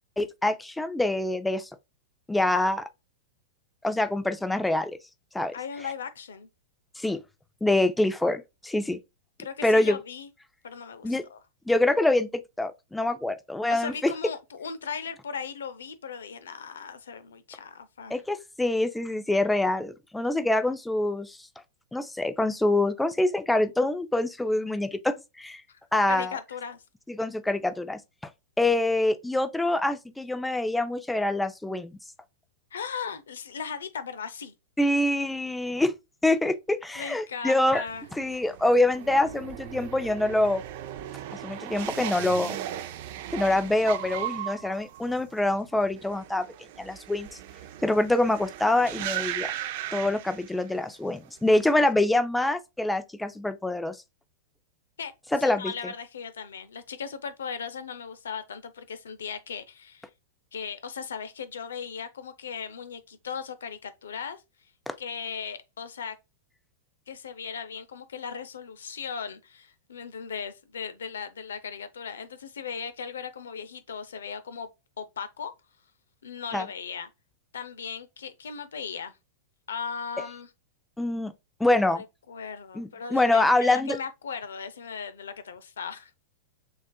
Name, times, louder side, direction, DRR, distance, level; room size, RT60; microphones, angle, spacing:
voice 1, 0.2-1.7 2.3-2.8 3.8-5.0 5.3-5.5 7.0-7.2 7.6-9.0 9.6-10.0 11.0-11.2 11.7-14.1 18.1-21.4 21.9-25.6 25.9-26.4 27.1-28.0 28.6-32.0 34.8-35.9 36.2-37.8 38.1-40.6 41.4-42.6 43.3-46.5 46.8-47.3 47.8-49.5 49.9-54.0 55.3-55.7 64.9-65.0 76.5-76.7 81.0-81.3 81.6-82.0 82.8-84.0, left 2 dB, 5° left, 0.4 m, -25 dB
voice 2, 5.5-6.5 9.4-10.3 10.6-11.4 13.7-18.2 25.7-25.8 26.1-26.8 32.7-34.5 36.9-38.0 55.0-55.1 55.4-60.1 60.5-64.4 65.0-66.2 67.1-74.7 75.0-75.5 76.2-77.1 77.5-79.1 79.7-80.5 81.7-86.1, left 6 dB, 85° left, 0.5 m, -37 dB
sound 1, 37.9-51.0 51.2-51.8, right 12 dB, 60° right, 0.5 m, -37 dB
6.2 x 2.4 x 2.2 m
hypercardioid pair, 120°, 0 cm